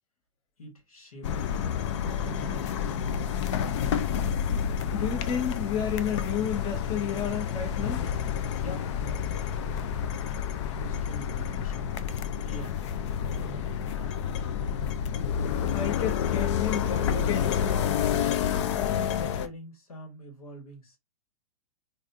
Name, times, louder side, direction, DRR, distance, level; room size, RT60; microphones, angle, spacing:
voice 1, 0.6-1.3 2.1-3.2 8.6-10.1 10.7-11.9 12.4-12.8 13.2-14.3 18.6-21.0, equal, 90° left, 1.5 m, -45 dB
sound 1, 1.2-19.5, left 8 dB, 55° left, 0.4 m, -29 dB
voice 2, 4.9-8.0 15.7-17.5, left 8 dB, 25° left, 0.7 m, -31 dB
3.1 x 2.5 x 2.6 m
hypercardioid pair, 115°, 18 cm